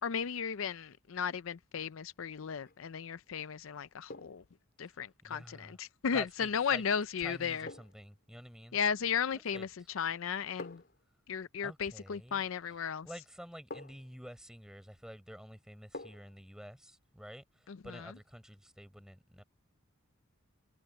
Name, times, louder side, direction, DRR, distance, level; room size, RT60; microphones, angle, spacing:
voice 1, 0.0-4.4 4.8-7.7 8.7-10.8 11.3-13.1 17.7-18.1, left 7 dB, 70° left, 0.5 m, -35 dB
sound 1, 2.5-2.9 4.1-4.5 6.6-6.8 7.7-8.1 9.5-9.8 10.6-11.0 12.7-12.8 13.7-14.2 15.9-16.4 16.8-16.9, left 2 dB, 50° left, 4.4 m, -48 dB
voice 2, 5.2-5.8 6.1-6.8 7.2-8.8 9.3-9.7 11.6-12.4 13.0-19.4, equal, 5° right, 5.0 m, -49 dB
head